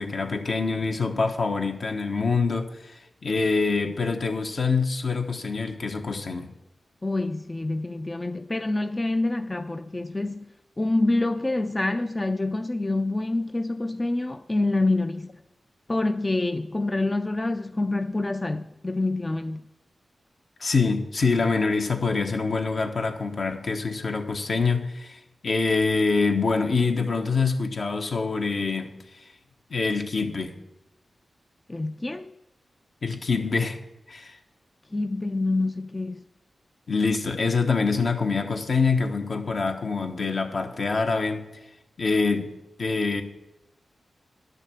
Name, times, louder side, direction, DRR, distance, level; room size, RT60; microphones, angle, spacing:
voice 1, 0.0-6.5 20.6-28.9 29.2-29.3 29.7-30.5 33.0-33.8 34.1-34.4 36.9-41.4 42.0-42.5 42.8-43.2, left 4 dB, 65° left, 1.2 m, -25 dB
voice 2, 7.0-10.5 10.8-15.4 15.9-19.6 31.7-32.3 34.9-36.2, left 2 dB, 25° left, 0.4 m, -26 dB
11.0 x 6.7 x 7.1 m
cardioid pair, 65°, 0 cm